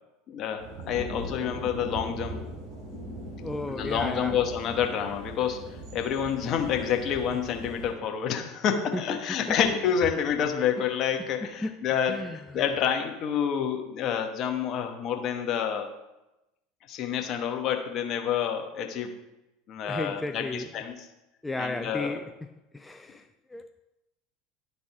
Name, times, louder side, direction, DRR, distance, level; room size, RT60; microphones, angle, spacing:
voice 1, 0.3-2.4 3.7-5.6 5.9-15.9 16.9-19.1 19.7-21.1 21.6-22.2, left 8 dB, 45° left, 4 dB, 1.1 m, -28 dB
sound 1, 0.6-7.9, right 1 dB, 55° right, 3.0 m, -39 dB
voice 2, 3.4-4.4 9.5-9.6 11.4-11.8 12.1-12.4 19.9-20.7 21.4-22.2 22.7-23.8, left 2 dB, 10° left, 7 dB, 0.4 m, -34 dB
12.0 x 4.1 x 3.5 m, 0.96 s
hypercardioid pair, 75°, 0 cm